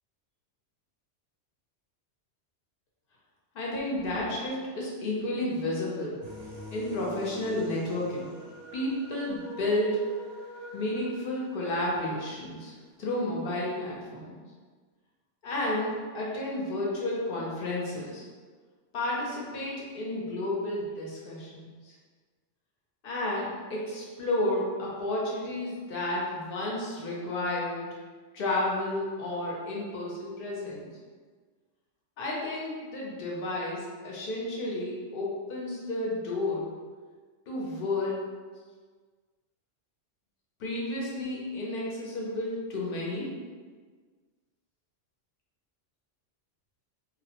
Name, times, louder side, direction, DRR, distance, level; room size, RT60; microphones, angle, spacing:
voice 1, 3.5-6.2 6.7-8.3 8.7-10.0 10.7-12.7 13.0-14.4 15.4-18.2 18.9-21.9 23.0-28.0 28.3-30.9 32.2-36.7 37.5-38.3 40.6-43.3, left 1 dB, 55° left, -4 dB, 0.7 m, -31 dB
sound 1, 6.2-12.4, left 1 dB, 60° right, 0.7 m, -45 dB
2.3 x 2.1 x 2.8 m, 1.5 s
omnidirectional pair, 1.3 m